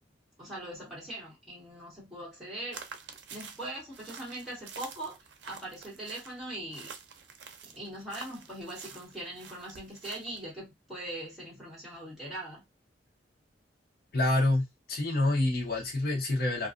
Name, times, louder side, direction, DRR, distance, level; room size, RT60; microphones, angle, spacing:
voice 1, 0.4-2.8 3.3-6.9 7.6-12.6, right 1 dB, ahead, 1.1 m, -41 dB
sound 1, 2.7-10.5, right 6 dB, 80° right, 0.5 m, -48 dB
voice 2, 14.1-16.7, left 2 dB, 55° left, 0.9 m, -27 dB
2.5 x 2.3 x 2.4 m
head